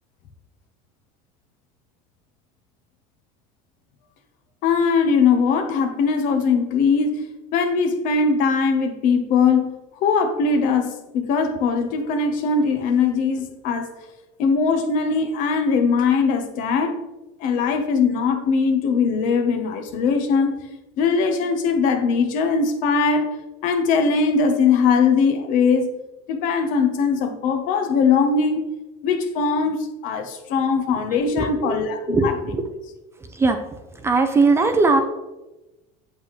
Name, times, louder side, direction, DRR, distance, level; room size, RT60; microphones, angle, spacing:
voice 1, 4.6-7.2 7.5-13.9 14.4-17.0 17.4-20.6 21.0-23.3 23.6-25.9 26.3-28.6 29.0-29.8 30.0-32.4, left 5 dB, 55° left, 6 dB, 1.1 m, -20 dB
voice 2, 31.3-31.7 32.1-32.6 33.2-33.6 33.9-35.0, right 3 dB, 15° right, 7 dB, 0.6 m, -19 dB
7.9 x 7.6 x 3.2 m, 1.0 s
supercardioid pair, 140°, 17 cm